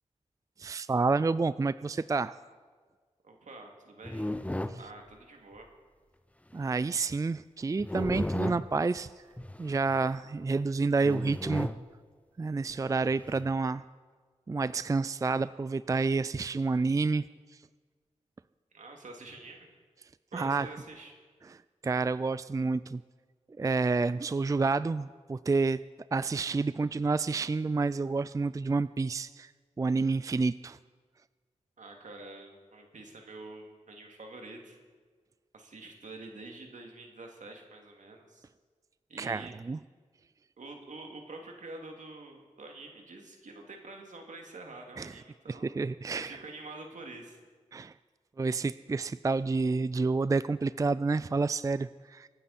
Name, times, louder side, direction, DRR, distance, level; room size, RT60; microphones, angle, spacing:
voice 1, 0.6-2.3 4.7-4.8 6.5-9.1 9.6-11.7 12.4-13.8 14.5-17.3 20.3-20.7 21.5-23.0 23.6-25.8 26.1-29.5 29.8-30.8 39.2-39.8 45.0-45.1 45.5-46.4 47.7-47.9 48.4-52.3, right 4 dB, 25° right, 16 dB, 0.3 m, -29 dB
voice 2, 3.2-4.3 4.8-5.7 18.7-19.8 20.3-21.2 31.8-34.8 35.5-38.5 39.1-39.5 40.6-45.7 46.1-47.4, right 2 dB, 75° right, 2 dB, 2.4 m, -47 dB
sound 1, 4.0-4.8 6.6-6.8 7.8-8.7 9.4-10.0 11.0-11.8 12.7-13.5, left 1 dB, 10° left, 0.7 m, -35 dB
26.0 x 9.4 x 4.2 m, 1.5 s
cardioid pair, 55°, 13 cm